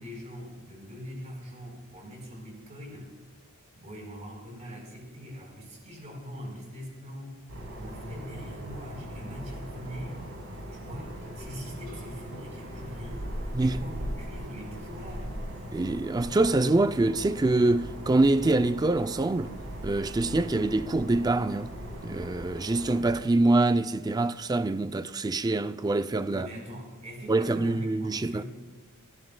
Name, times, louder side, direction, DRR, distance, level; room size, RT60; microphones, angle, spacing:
voice 1, 0.0-3.1 3.7-7.4 7.8-10.3 10.7-13.3 13.6-15.3 26.2-28.4, equal, 35° right, 4.3 m, -42 dB
sound 1, 7.5-23.2, equal, 70° right, 4.3 m, -39 dB
voice 2, 15.7-19.5 19.8-21.7 22.0-26.5 27.3-28.4, right 2 dB, 15° right, 0.3 m, -25 dB
30.0 x 11.0 x 2.2 m
head